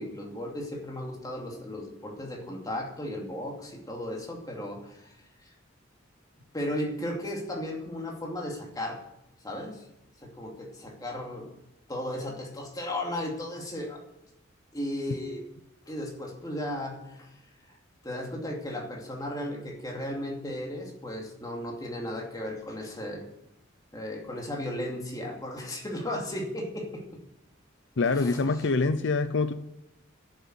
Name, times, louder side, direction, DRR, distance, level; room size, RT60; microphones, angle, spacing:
voice 1, 0.0-5.2 6.5-9.0 9.4-9.8 10.2-11.5 11.9-14.0 14.7-15.4 15.9-17.3 17.7-17.8 18.0-23.2 23.9-27.0 28.0-28.4, left 1 dB, 20° left, 0 dB, 2.5 m, -35 dB
voice 2, 28.0-29.5, left 3 dB, 65° left, 11 dB, 0.6 m, -25 dB
11.5 x 7.1 x 9.2 m, 0.87 s
head